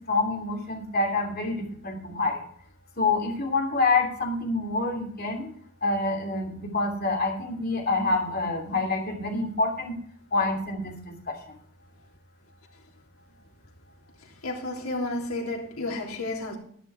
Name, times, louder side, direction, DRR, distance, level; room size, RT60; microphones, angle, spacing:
voice 1, 0.0-2.4 3.0-5.5 5.8-9.9 10.3-11.1, left 3 dB, 45° left, 2.9 m, -27 dB
voice 2, 14.4-16.6, left 2 dB, 80° left, 3.3 m, -31 dB
11.0 x 11.0 x 4.8 m
head